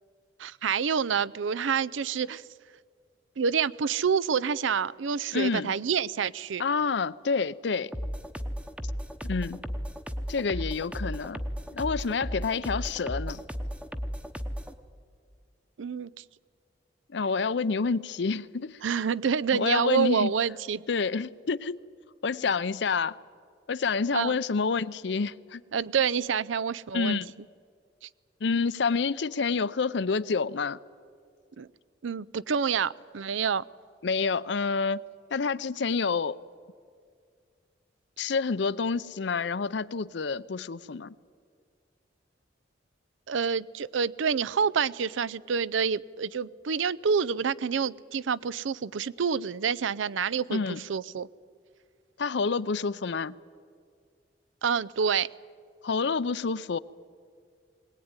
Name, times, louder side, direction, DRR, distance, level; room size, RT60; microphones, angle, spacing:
voice 1, 0.4-2.4 3.4-6.6 15.8-16.2 18.8-20.8 24.1-24.4 25.7-27.2 28.0-28.1 31.6-31.7 32.0-33.6 43.3-51.3 54.6-55.3, right 6 dB, 85° right, 0.5 m, -28 dB
voice 2, 5.3-5.7 6.6-7.9 9.2-9.6 10.3-11.4 11.7-13.4 17.1-18.8 19.5-20.3 20.9-21.8 22.2-23.2 23.7-25.6 26.9-27.3 28.4-30.8 34.0-35.0 35.3-36.4 38.2-41.1 50.5-50.8 52.2-53.3 55.8-56.8, left 5 dB, 65° left, 0.5 m, -28 dB
sound 1, 7.9-14.7, equal, 5° right, 0.8 m, -34 dB
21.5 x 18.5 x 9.7 m
head